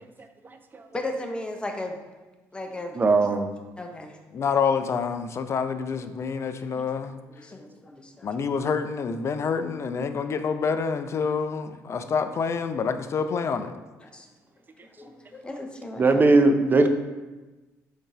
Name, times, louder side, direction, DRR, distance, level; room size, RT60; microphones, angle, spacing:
voice 1, 0.9-2.0 2.5-3.0 3.8-4.1 6.8-6.9 7.4-8.5 11.9-12.1 14.0-14.3 15.0-16.2, left 1 dB, 15° left, 3 dB, 0.7 m, -36 dB
voice 2, 3.0-3.5 16.0-16.9, right 3 dB, 30° right, 7 dB, 0.5 m, -18 dB
voice 3, 4.3-7.2 8.2-13.7, left 5 dB, 45° left, 9 dB, 0.4 m, -27 dB
3.7 x 2.7 x 4.6 m, 1.2 s
supercardioid pair, 70°, 7 cm